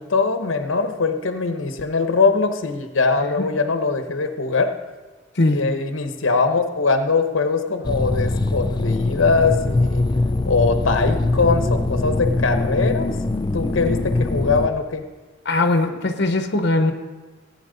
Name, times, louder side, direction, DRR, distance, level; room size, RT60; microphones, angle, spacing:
voice 1, 0.0-4.7 5.5-10.1 10.5-13.1 13.5-15.0, left 4 dB, 85° left, 7 dB, 0.9 m, -21 dB
sound 1, 7.8-14.7, left 2 dB, 20° left, 0.4 m, -22 dB
voice 2, 15.4-16.9, left 2 dB, 60° left, 6 dB, 0.9 m, -20 dB
16.0 x 8.8 x 3.9 m, 1.3 s
head